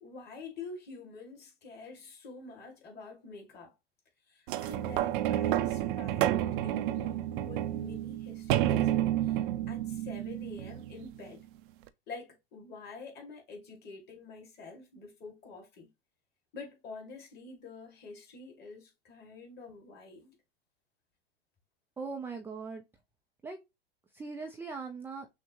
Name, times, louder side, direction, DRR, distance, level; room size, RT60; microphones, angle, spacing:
voice 1, 0.0-3.7 4.3-11.5 12.1-15.9 16.5-20.4, left 4 dB, 35° left, 2.0 m, -47 dB
sound 1, 4.5-11.2 11.9-12.0, right 13 dB, 55° right, 0.5 m, -30 dB
voice 2, 22.0-22.8 23.4-23.6 24.1-25.3, right 4 dB, 5° right, 0.3 m, -40 dB
6.1 x 2.1 x 2.8 m
hypercardioid pair, 115°, 31 cm